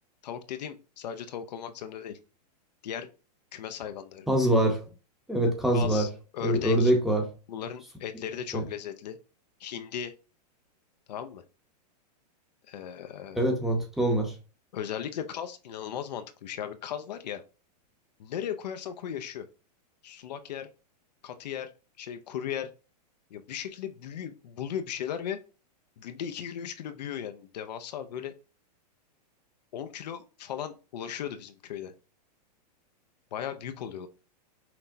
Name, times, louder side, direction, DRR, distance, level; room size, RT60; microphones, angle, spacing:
voice 1, 0.2-2.2 2.8-3.1 3.5-4.3 5.7-6.9 7.5-9.2 9.6-10.1 11.1-11.4 12.7-13.4 14.7-17.4 18.2-19.5 20.0-20.7 21.2-21.7 22.0-22.7 23.3-25.4 26.0-28.3 29.7-31.9 33.3-34.1, left 9 dB, 80° left, 0.5 m, -37 dB
voice 2, 4.3-4.8 5.3-6.1 6.4-7.3 8.5-8.6 13.4-14.3, right 1 dB, ahead, 0.8 m, -24 dB
5.8 x 2.2 x 2.6 m
hypercardioid pair, 140°, 21 cm